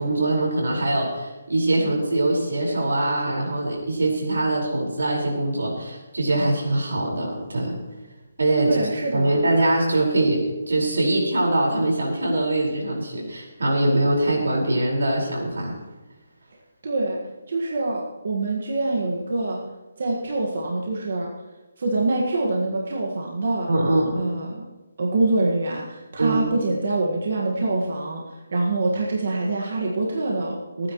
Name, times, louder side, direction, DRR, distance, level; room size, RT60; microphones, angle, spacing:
voice 1, 0.0-7.8 8.4-15.8 23.7-24.1 26.2-26.4, right 2 dB, 90° right, -1 dB, 4.9 m, -23 dB
voice 2, 8.6-9.4 16.8-17.2 17.5-19.6 20.0-21.3 21.8-23.7 24.1-24.6 25.0-28.2 28.5-30.9, right 2 dB, 45° right, -2 dB, 1.7 m, -25 dB
25.0 x 9.7 x 3.1 m, 1.2 s
hypercardioid pair, 180°, 0 cm